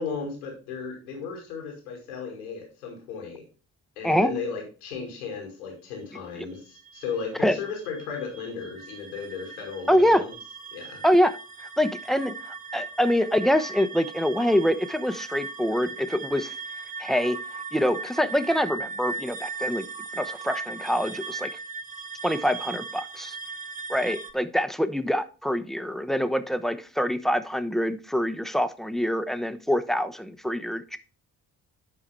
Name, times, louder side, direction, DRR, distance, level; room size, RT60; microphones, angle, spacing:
voice 1, 0.0-3.4 4.0-10.3 10.7-11.0, left 5 dB, 90° left, 0 dB, 2.3 m, -35 dB
sound 1, 6.4-24.3, right 4 dB, 20° right, 1.2 m, -38 dB
voice 2, 9.9-10.2 11.0-11.4 11.8-12.3 12.7-16.5 17.0-17.4 17.7-19.8 20.1-21.5 22.2-23.4 23.9-31.0, equal, ahead, 11 dB, 0.8 m, -25 dB
11.0 x 4.9 x 3.4 m, 0.36 s
hypercardioid pair, 40°, 43 cm